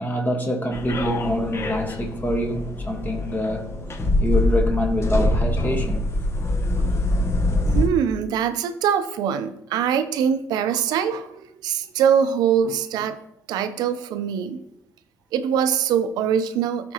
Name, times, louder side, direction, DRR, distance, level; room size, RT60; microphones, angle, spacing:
voice 1, 0.0-3.7 4.2-6.0 6.8-6.9, equal, 25° left, 1.5 m, -25 dB
sound 1, 0.7-7.9, left 1 dB, 40° left, 1.2 m, -24 dB
voice 2, 7.7-13.2 13.5-14.6 15.3-16.9, right 8 dB, 90° right, 0.6 m, -23 dB
13.0 x 5.1 x 3.0 m
cardioid pair, 70°, 7 cm